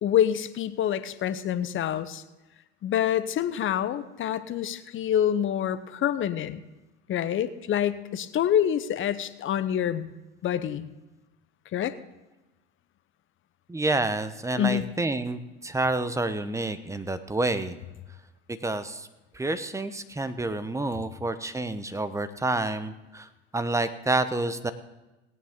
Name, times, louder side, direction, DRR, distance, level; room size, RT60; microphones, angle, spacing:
voice 1, 0.0-2.2 2.8-6.6 7.1-10.1 10.4-10.9 11.7-11.9 14.6-14.9, left 10 dB, 40° left, 13 dB, 0.9 m, -26 dB
voice 2, 13.7-17.8 18.6-19.1 19.3-23.3 23.5-24.7, right 2 dB, 10° right, 11 dB, 0.9 m, -28 dB
17.5 x 9.2 x 3.7 m, 1.1 s
hypercardioid pair, 75°, 33 cm